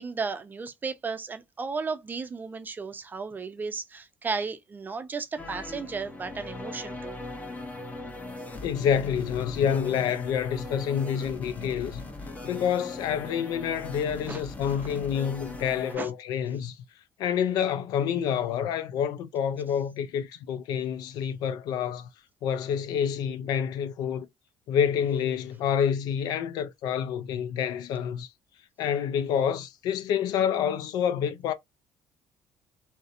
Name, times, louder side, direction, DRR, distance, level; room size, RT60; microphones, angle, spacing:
voice 1, 0.0-7.2 14.3-15.0 15.9-16.1, right 4 dB, 25° right, 0.5 m, -34 dB
sound 1, 5.4-15.9, left 2 dB, 20° left, 0.7 m, -40 dB
voice 2, 8.6-12.0 12.4-16.8 17.2-22.1 22.4-24.3 24.7-28.3 28.8-31.5, left 8 dB, 75° left, 0.4 m, -28 dB
2.7 x 2.0 x 2.4 m
cardioid pair, 100°, 7 cm